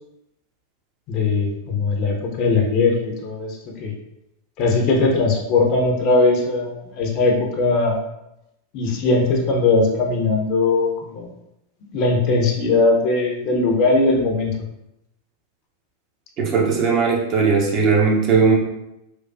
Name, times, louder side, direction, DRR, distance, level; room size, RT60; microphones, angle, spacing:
voice 1, 1.1-3.9 4.6-8.0 8.7-11.3 11.9-14.5, left 3 dB, 40° left, 1 dB, 0.7 m, -19 dB
voice 2, 16.4-18.5, right 5 dB, 35° right, -1 dB, 0.8 m, -18 dB
4.5 x 2.3 x 2.6 m, 0.86 s
figure-of-eight pair, 90°, 0 cm